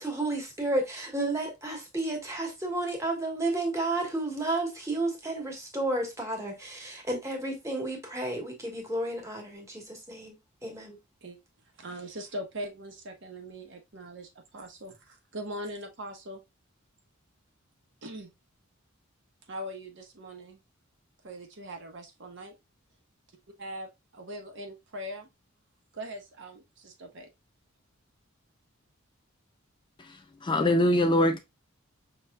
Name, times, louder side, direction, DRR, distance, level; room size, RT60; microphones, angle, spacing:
voice 1, 0.0-10.3 10.6-11.0, right 2 dB, 15° right, 1.3 m, -32 dB
voice 2, 11.8-16.4 18.0-18.3 19.5-20.6 21.2-22.5 23.6-25.3 25.9-27.3, equal, 60° right, 0.9 m, -41 dB
voice 3, 30.0-31.4, left 1 dB, 25° left, 0.4 m, -24 dB
5.5 x 3.0 x 2.2 m
head